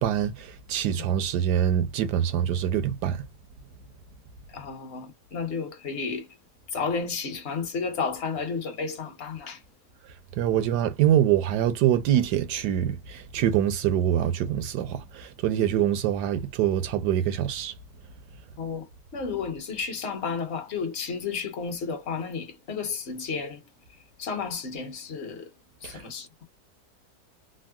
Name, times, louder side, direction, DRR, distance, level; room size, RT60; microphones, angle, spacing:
voice 1, 0.0-3.2 10.4-17.7 25.8-26.0, right 10 dB, 75° right, 1.2 m, -25 dB
voice 2, 4.5-6.3 6.7-9.6 18.6-23.6 24.2-25.5 25.8-26.4, left 5 dB, 45° left, 1.0 m, -32 dB
3.6 x 2.0 x 2.2 m
omnidirectional pair, 1.9 m